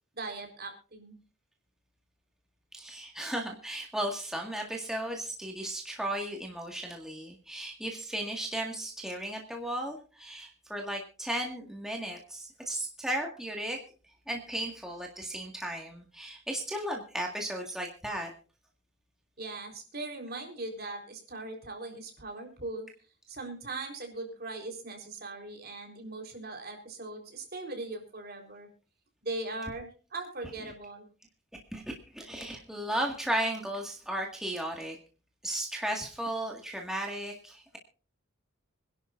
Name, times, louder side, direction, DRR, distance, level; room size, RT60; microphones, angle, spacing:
voice 1, 0.1-1.2 19.4-22.9 23.3-28.7 29.2-31.1, right 2 dB, 45° right, 2 dB, 4.0 m, -40 dB
voice 2, 2.7-13.8 14.3-18.3 31.7-35.0 35.4-37.8, right 1 dB, ahead, 0 dB, 1.9 m, -35 dB
25.5 x 11.5 x 2.6 m, 0.37 s
head